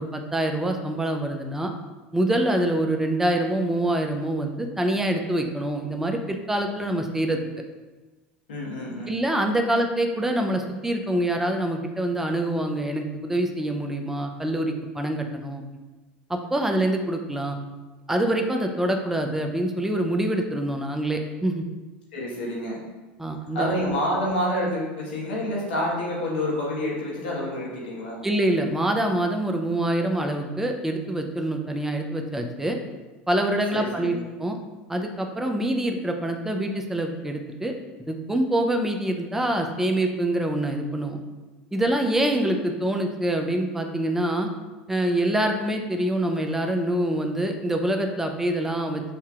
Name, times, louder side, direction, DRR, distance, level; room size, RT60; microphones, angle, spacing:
voice 1, 0.0-1.7 2.1-7.4 9.1-15.6 16.3-17.6 18.1-21.6 23.2-23.7 28.2-32.8 33.3-34.6 34.9-37.7 38.0-41.2 41.7-44.5 44.9-49.0, right 1 dB, 5° right, 4 dB, 0.5 m, -25 dB
voice 2, 8.5-9.2 22.1-22.8 23.5-28.2 33.7-34.2, left 1 dB, 90° left, -4 dB, 1.4 m, -28 dB
6.5 x 2.7 x 2.4 m, 1.2 s
hypercardioid pair, 95°, 5 cm